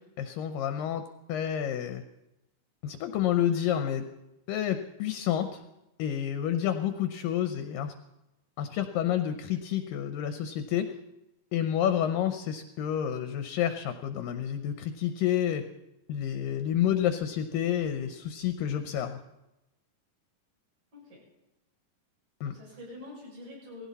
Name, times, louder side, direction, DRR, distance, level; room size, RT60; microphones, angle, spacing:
voice 1, 0.2-1.0 1.3-2.0 2.8-4.0 4.5-5.6 6.0-7.9 8.6-11.0 11.5-15.6 16.1-19.2 22.4-22.6, left 10 dB, 75° left, 8 dB, 2.1 m, -29 dB
voice 2, 22.4-23.9, left 2 dB, 50° right, -4 dB, 8.0 m, -46 dB
19.0 x 16.5 x 4.1 m, 0.94 s
omnidirectional pair, 4.6 m